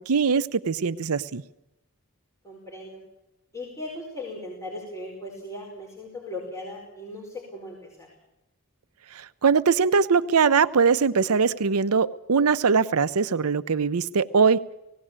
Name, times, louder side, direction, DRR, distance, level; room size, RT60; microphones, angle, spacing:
voice 1, 0.0-1.4 9.1-14.6, right 5 dB, 75° right, 13 dB, 0.6 m, -21 dB
voice 2, 2.4-3.0 3.5-8.1, left 1 dB, 15° left, -3 dB, 4.9 m, -38 dB
19.0 x 17.0 x 8.8 m, 0.91 s
head